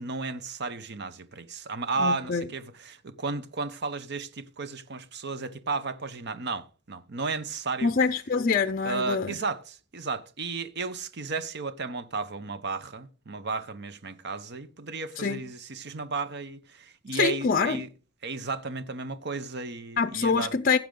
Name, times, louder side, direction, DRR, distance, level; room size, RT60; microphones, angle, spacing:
voice 1, 0.0-7.9 8.8-17.9 18.2-20.6, right 4 dB, 60° right, 0.9 m, -33 dB
voice 2, 2.0-2.5 7.8-9.3 15.2-15.4 17.1-17.8 20.0-20.8, left 5 dB, 45° left, 0.6 m, -25 dB
15.5 x 7.5 x 3.8 m
head